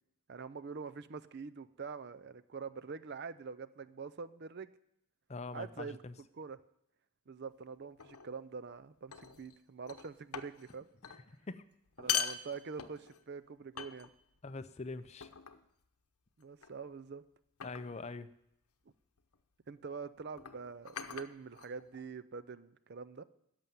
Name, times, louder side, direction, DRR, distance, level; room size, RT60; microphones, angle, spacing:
voice 1, 0.3-4.7 5.5-6.0 6.4-6.6 7.3-10.9 12.0-14.1 16.4-17.2 19.7-23.2, right 5 dB, 45° right, 13 dB, 0.5 m, -45 dB
voice 2, 5.3-6.1 11.0-11.6 14.4-15.3 17.6-18.3, left 3 dB, 30° left, 12 dB, 0.5 m, -44 dB
sound 1, 8.0-8.3 9.1-9.6 9.9-10.8 11.0-11.2 11.9-13.2 13.8-14.4 15.2-15.7 16.6-16.9 17.6-18.0 19.2-19.4 20.3-22.1, left 9 dB, 80° left, 0.8 m, -40 dB
11.5 x 7.0 x 9.2 m, 0.79 s
head